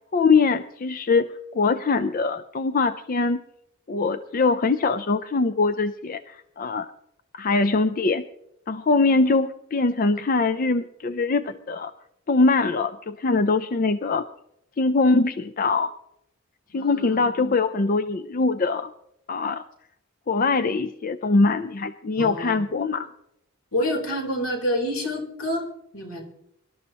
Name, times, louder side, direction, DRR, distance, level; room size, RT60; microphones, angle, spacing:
voice 1, 0.1-1.3 1.5-3.4 3.9-6.9 7.3-8.2 8.7-11.9 12.3-14.2 14.8-15.9 16.7-18.9 19.3-19.6 20.3-23.1, left 3 dB, 40° left, 11 dB, 0.5 m, -22 dB
voice 2, 16.7-17.2 22.2-22.6 23.7-25.6 25.9-26.2, equal, 70° left, 1 dB, 3.7 m, -27 dB
24.5 x 12.5 x 2.9 m, 0.78 s
head